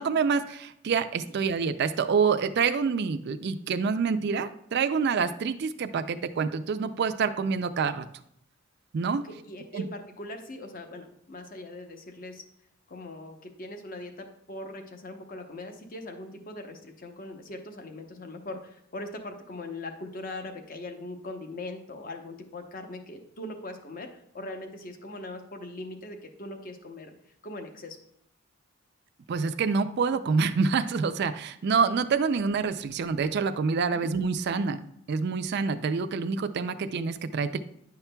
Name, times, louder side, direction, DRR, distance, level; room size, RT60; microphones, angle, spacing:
voice 1, 0.0-8.1 8.9-9.2 9.7-9.9 29.3-34.8 35.1-37.6, right 5 dB, 50° right, 10 dB, 0.4 m, -27 dB
voice 2, 9.2-12.4 12.9-27.1 27.4-28.0 33.9-34.1, left 2 dB, 40° left, 5 dB, 0.8 m, -40 dB
9.8 x 5.8 x 2.2 m, 0.75 s
head